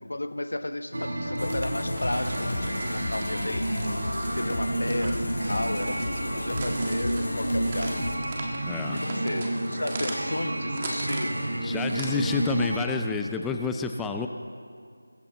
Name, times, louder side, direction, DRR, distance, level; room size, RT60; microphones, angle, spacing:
voice 1, 0.0-4.0 4.4-7.9 8.9-11.4, left 1 dB, 75° left, 9 dB, 1.1 m, -33 dB
sound 1, 0.9-12.9, right 1 dB, 80° right, 4.3 m, -30 dB
sound 2, 1.2-12.6, right 2 dB, 25° right, 1.6 m, -40 dB
sound 3, 1.4-8.2, left 2 dB, 55° left, 1.7 m, -34 dB
voice 2, 8.6-9.0 11.6-14.3, left 5 dB, 5° left, 4 dB, 0.4 m, -29 dB
22.0 x 10.0 x 4.0 m, 2.1 s
figure-of-eight pair, 170°, 0 cm